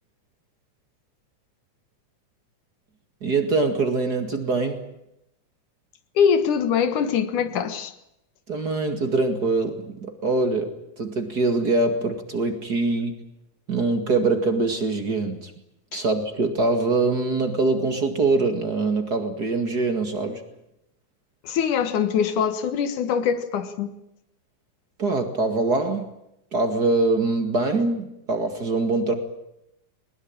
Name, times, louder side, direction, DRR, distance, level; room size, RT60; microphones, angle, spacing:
voice 1, 3.2-4.8 8.5-13.1 13.7-15.5 15.9-20.4 25.0-26.1 26.5-29.1, right 3 dB, 35° right, 2.3 m, -23 dB
voice 2, 6.2-7.9 15.9-16.0 21.4-23.9, left 7 dB, 80° left, 3.1 m, -23 dB
21.0 x 20.5 x 8.9 m
omnidirectional pair, 3.5 m